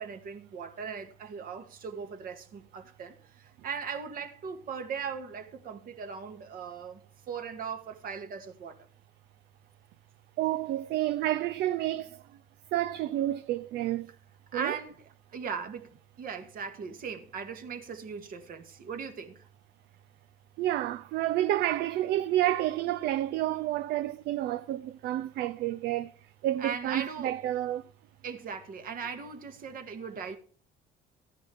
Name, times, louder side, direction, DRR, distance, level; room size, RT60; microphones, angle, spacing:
voice 1, 0.0-8.8 14.5-19.5 26.6-27.3 28.2-30.4, right 6 dB, 55° right, 2.2 m, -39 dB
voice 2, 10.4-12.2 12.7-14.1 14.5-14.8 20.6-26.1 26.4-27.8, right 13 dB, 75° right, 0.5 m, -29 dB
14.0 x 10.5 x 3.6 m
cardioid pair, 110°, 17 cm